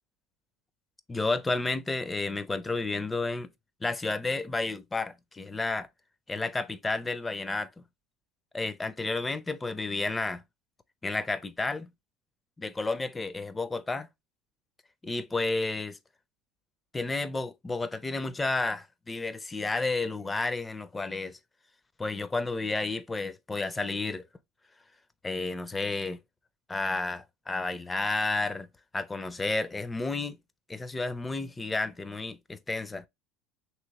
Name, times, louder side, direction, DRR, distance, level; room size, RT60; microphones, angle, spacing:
voice 1, 1.1-3.5 3.8-5.9 6.3-7.8 8.5-10.4 11.0-11.9 12.6-14.1 15.0-16.0 16.9-21.4 22.0-24.3 25.2-26.2 26.7-28.7 28.9-30.4 30.7-33.0, left 3 dB, 15° left, 0.4 m, -31 dB
3.1 x 3.0 x 2.8 m
hypercardioid pair, 90°, 0 cm